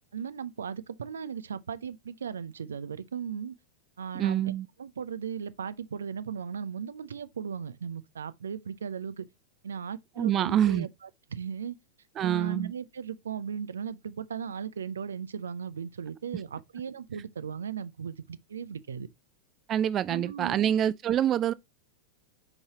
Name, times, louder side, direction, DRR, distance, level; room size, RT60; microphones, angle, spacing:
voice 1, 0.1-3.5 4.0-4.5 4.8-9.3 9.6-11.8 12.2-19.1 20.1-20.6, right 7 dB, 70° right, 0.6 m, -37 dB
voice 2, 4.1-4.7 10.2-10.9 12.2-12.7 19.7-21.5, right 10 dB, 30° right, 0.3 m, -26 dB
8.0 x 5.6 x 2.8 m
figure-of-eight pair, 90°, 0 cm